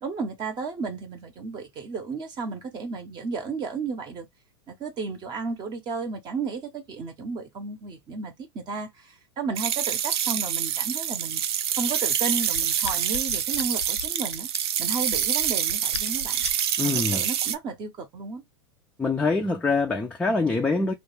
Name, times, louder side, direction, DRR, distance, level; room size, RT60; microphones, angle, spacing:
voice 1, 0.0-4.3 4.7-11.4 11.8-14.5 14.8-16.4 16.8-18.4, right 4 dB, 30° right, 0.7 m, -33 dB
sound 1, 9.6-17.5, right 9 dB, 70° right, 0.5 m, -26 dB
sound 2, 12.4-16.7 17.1-17.4, left 7 dB, 85° left, 0.4 m, -38 dB
voice 2, 16.8-17.3 19.0-20.9, left 3 dB, 5° left, 0.4 m, -24 dB
2.3 x 2.2 x 3.1 m
hypercardioid pair, 100°, 14 cm